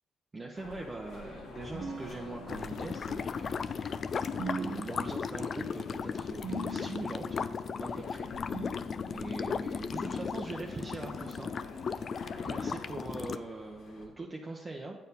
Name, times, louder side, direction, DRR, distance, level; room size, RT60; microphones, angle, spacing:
voice 1, 0.3-4.1 4.5-7.4 7.8-11.5 12.5-15.0, right 2 dB, 25° right, -1 dB, 0.7 m, -42 dB
sound 1, 0.6-14.1, left 3 dB, 85° left, 1.3 m, -49 dB
sound 2, 1.7-2.9 4.4-5.5 6.4-7.3 8.5-9.5, right 4 dB, 75° right, 0.8 m, -41 dB
sound 3, 2.5-13.4, left 6 dB, 50° left, 0.3 m, -36 dB
8.1 x 4.6 x 5.3 m, 1.1 s
cardioid pair, 90°, 0 cm